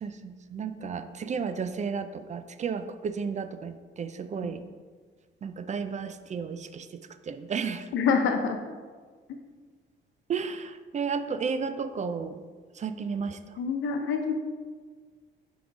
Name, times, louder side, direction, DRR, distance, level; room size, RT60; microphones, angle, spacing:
voice 1, 0.0-4.6 5.4-6.9 7.3-7.9 10.3-12.5 12.8-13.4, right 6 dB, 35° right, 10 dB, 0.4 m, -33 dB
voice 2, 7.9-8.6 13.6-14.3, left 5 dB, 80° left, 5 dB, 0.8 m, -26 dB
5.8 x 3.9 x 4.8 m, 1.5 s
cardioid pair, 90°, 20 cm